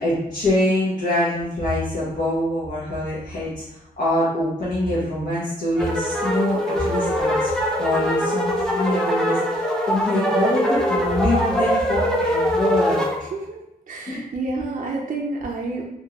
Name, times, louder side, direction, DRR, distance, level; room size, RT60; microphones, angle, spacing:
voice 1, 0.0-7.5 7.8-13.0 14.1-14.2, left 1 dB, 60° left, -8 dB, 0.9 m, -24 dB
sound 1, 5.8-13.2, equal, 5° left, 0.5 m, -22 dB
voice 2, 13.2-13.6 13.9-15.9, right 3 dB, 55° right, -1 dB, 0.4 m, -29 dB
3.5 x 2.6 x 2.9 m, 0.88 s
wide cardioid pair, 145°, 16 cm